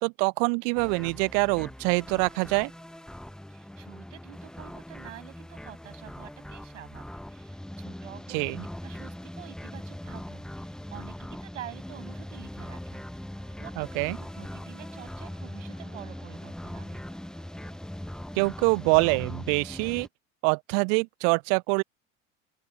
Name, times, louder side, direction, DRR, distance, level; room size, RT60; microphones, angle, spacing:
voice 1, 0.0-2.7 8.3-8.6 13.8-14.2 18.4-20.1 20.4-21.8, right 40 dB or more, 50° right, 0.7 m, -25 dB
sound 1, 0.8-20.1, left 1 dB, ahead, 1.1 m, -41 dB
voice 2, 3.5-8.5 8.8-13.2 13.6-13.7 14.2-17.0, right 13 dB, 70° right, 7.5 m, -48 dB
sound 2, 13.3-18.8, right 8 dB, 30° right, 7.7 m, -61 dB
open air
figure-of-eight pair, 70°, 39 cm